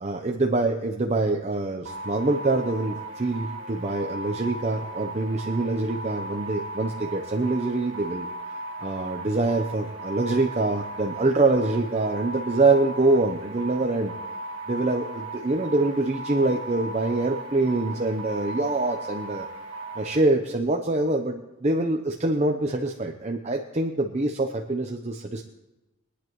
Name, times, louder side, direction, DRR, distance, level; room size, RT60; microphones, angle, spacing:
voice 1, 0.0-8.3 8.8-14.1 14.7-19.5 20.0-25.4, right 2 dB, 30° right, 3 dB, 0.7 m, -25 dB
sound 1, 1.8-20.2, right 2 dB, 65° right, 1.6 m, -37 dB
22.5 x 9.9 x 3.1 m, 1.0 s
head